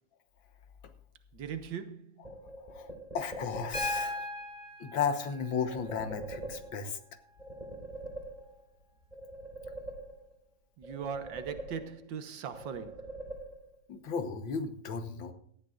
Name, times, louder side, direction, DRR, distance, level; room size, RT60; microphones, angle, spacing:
voice 1, 1.3-2.1 10.8-13.0, right 7 dB, 75° right, 1.8 m, -39 dB
sound 1, 2.2-4.2 5.7-7.0 7.4-8.8 9.1-10.5 10.8-12.2 12.5-13.9, right 1 dB, 20° right, 4.3 m, -44 dB
voice 2, 3.1-4.3 4.8-7.0 13.9-15.3, left 6 dB, 85° left, 2.0 m, -34 dB
Piano, 3.7-7.7 9.3-9.4, left 2 dB, 30° left, 5.0 m, -40 dB
17.5 x 12.5 x 2.5 m
omnidirectional pair, 2.1 m